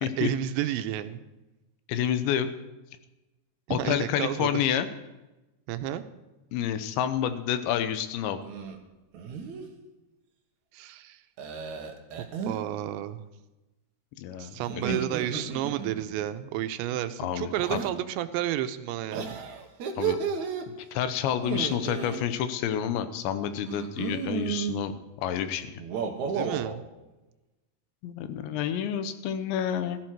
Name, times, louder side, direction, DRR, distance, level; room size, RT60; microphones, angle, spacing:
voice 1, 0.0-1.2 3.7-4.7 5.7-6.0 10.7-11.2 12.4-13.2 14.4-19.4 26.3-26.8, right 12 dB, 85° right, 10 dB, 3.0 m, -31 dB
voice 2, 1.9-2.5 3.7-4.9 6.5-8.4 14.2-14.9 17.2-17.8 20.0-20.2 20.7-24.9 25.2-25.8 28.0-30.0, left 9 dB, 85° left, 10 dB, 3.2 m, -29 dB
sound 1, 8.4-8.8 9.1-9.7 11.4-12.6 14.7-16.1 17.5-17.9 19.1-20.7 21.4-22.2 23.7-24.8 25.8-26.8, right 6 dB, 60° right, 2.0 m, -33 dB
16.0 x 14.5 x 4.6 m, 1.0 s
omnidirectional pair, 5.1 m